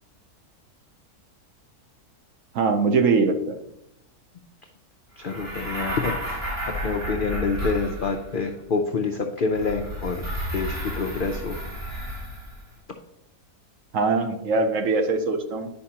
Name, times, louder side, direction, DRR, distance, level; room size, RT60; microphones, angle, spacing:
voice 1, 2.5-3.6 13.9-15.7, right 4 dB, 65° right, 7 dB, 0.9 m, -22 dB
voice 2, 5.2-6.5 6.8-10.2 10.5-11.6, left 4 dB, 70° left, 3 dB, 0.5 m, -27 dB
sound 1, 5.2-8.4 9.5-12.7, equal, 40° right, 3.1 m, -32 dB
10.0 x 5.2 x 2.8 m, 0.82 s
omnidirectional pair, 1.6 m